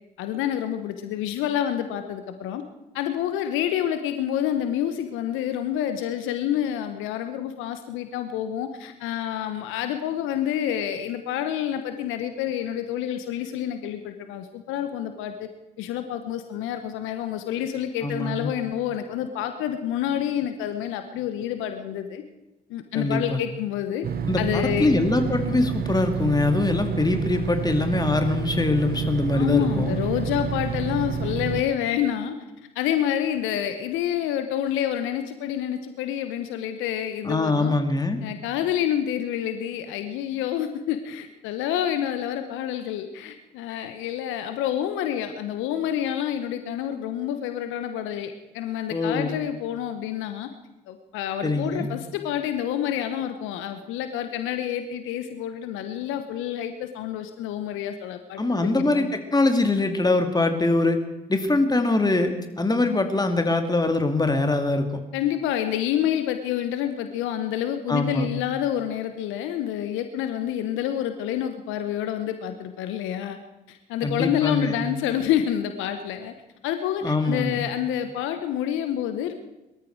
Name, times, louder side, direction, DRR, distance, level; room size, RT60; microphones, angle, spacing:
voice 1, 0.2-2.6 2.9-15.5 15.8-22.2 22.7-24.1 24.4-24.9 29.3-32.3 32.7-37.7 38.2-50.5 50.9-58.7 59.0-59.1 65.1-73.4 73.7-76.3 76.6-79.3, left 10 dB, 70° left, 8 dB, 1.1 m, -28 dB
voice 2, 18.0-18.5 22.9-23.4 24.3-30.0 37.2-38.2 48.9-49.4 51.4-51.9 58.4-61.0 61.3-65.0 67.9-68.3 74.0-74.8 77.0-77.6, left 2 dB, 20° left, 6 dB, 2.4 m, -23 dB
sound 1, 24.0-31.6, right 7 dB, 45° right, 1.2 m, -29 dB
22.0 x 13.5 x 4.7 m, 1.0 s
hypercardioid pair, 50°, 21 cm